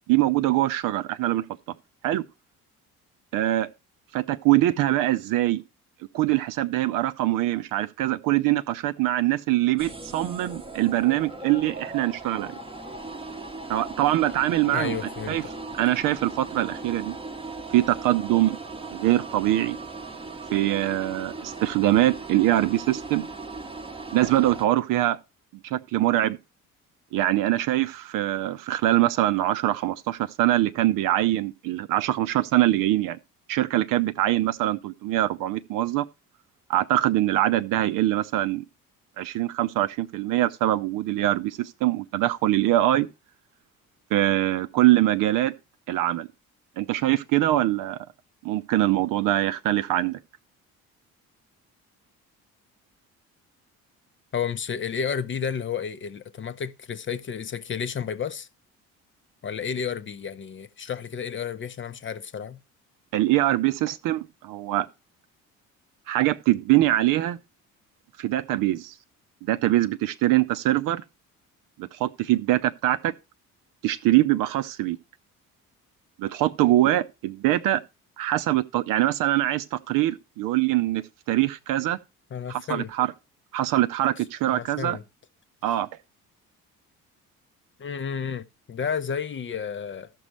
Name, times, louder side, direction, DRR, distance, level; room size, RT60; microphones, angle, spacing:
voice 1, 0.1-1.4 2.0-2.2 3.3-3.7 4.1-5.6 6.1-12.6 13.7-15.0 15.3-15.4 15.8-17.2 17.7-18.6 18.9-19.8 20.5-23.3 24.1-25.2 25.6-26.4 27.1-33.2 33.5-36.0 36.7-38.6 39.2-43.1 44.1-45.5 45.9-46.3 46.8-48.1 48.4-50.2 63.1-64.9 66.1-67.4 68.2-68.9 69.5-71.0 71.8-73.1 73.8-75.0 76.2-77.8 78.2-82.0 82.5-83.1 83.5-85.0 85.6-85.9, right 15 dB, 50° right, 0.6 m, -23 dB
sound 1, 9.8-24.6, right 3 dB, 10° right, 0.9 m, -38 dB
voice 2, 14.7-15.4 54.3-58.5 59.4-62.6 82.3-82.9 84.5-85.0 87.8-90.1, left 7 dB, 30° left, 0.6 m, -31 dB
14.5 x 6.1 x 3.2 m
figure-of-eight pair, 50°, 43 cm